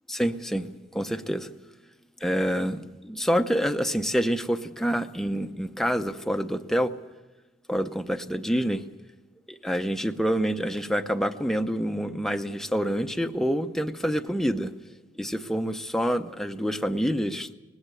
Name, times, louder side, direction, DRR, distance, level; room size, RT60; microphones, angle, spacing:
voice 1, 0.1-1.5 2.2-6.9 7.7-8.9 9.5-14.7 15.2-17.5, equal, ahead, 7 dB, 0.7 m, -27 dB
19.0 x 16.5 x 9.0 m, 1.2 s
head